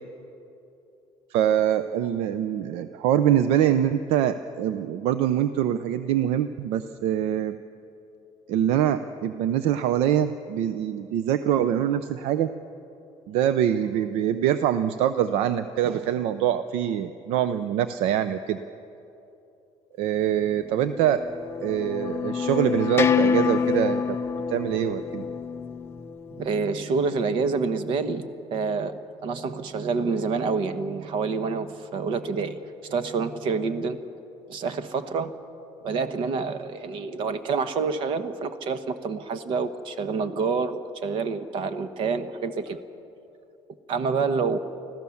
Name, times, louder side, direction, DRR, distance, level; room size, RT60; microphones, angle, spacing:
voice 1, 1.3-7.6 8.5-12.5 13.3-18.6 20.0-21.2 21.6-24.2 24.5-25.2, right 10 dB, 75° right, 12 dB, 0.6 m, -24 dB
sound 1, 20.7-26.7, left 6 dB, 25° left, 0.6 m, -27 dB
voice 2, 26.3-34.0 34.5-35.3 35.8-42.8 43.9-44.6, right 4 dB, 55° right, 11 dB, 1.1 m, -27 dB
25.5 x 15.5 x 7.1 m, 2.9 s
cardioid pair, 160°, 10 cm